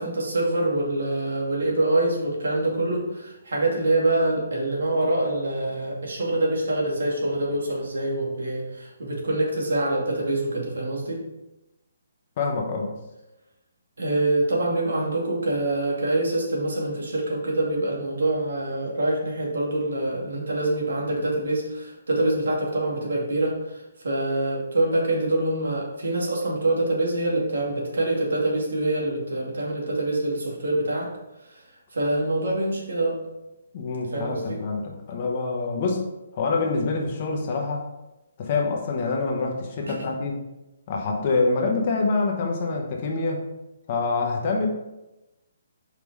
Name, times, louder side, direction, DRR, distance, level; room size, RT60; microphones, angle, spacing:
voice 1, 0.0-11.2 14.0-31.1 31.4-31.6 31.9-33.2 34.1-34.6 39.9-40.1, right 2 dB, 90° right, -2 dB, 2.3 m, -25 dB
voice 2, 12.4-12.9 33.7-36.0 36.3-37.9 38.4-40.4 40.9-43.4 43.9-44.7, left 3 dB, 25° left, 0 dB, 0.9 m, -26 dB
5.5 x 4.8 x 4.7 m, 0.97 s
hypercardioid pair, 175°, 0 cm